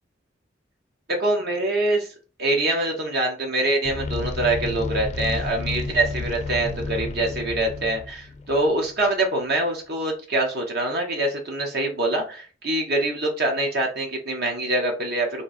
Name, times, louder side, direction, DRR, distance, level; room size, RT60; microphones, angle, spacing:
voice 1, 1.1-2.1 2.4-15.4, right 2 dB, 60° right, 1 dB, 0.9 m, -24 dB
sound 1, 3.8-9.0, left 3 dB, 40° left, 0.5 m, -31 dB
3.8 x 2.7 x 4.1 m, 0.37 s
head